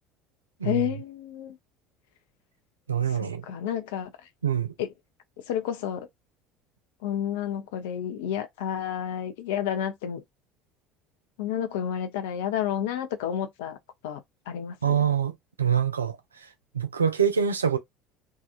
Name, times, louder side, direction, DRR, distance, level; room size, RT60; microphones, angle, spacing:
voice 1, 0.6-1.6 3.2-4.1 4.8-4.9 5.5-6.1 7.0-10.2 11.4-13.8 14.0-15.0, left 10 dB, 65° left, 0.6 m, -30 dB
voice 2, 2.9-3.4 4.4-4.7 14.8-16.5 16.7-17.8, right 8 dB, 80° right, 0.4 m, -25 dB
2.8 x 2.4 x 2.4 m
figure-of-eight pair, 65°, 0 cm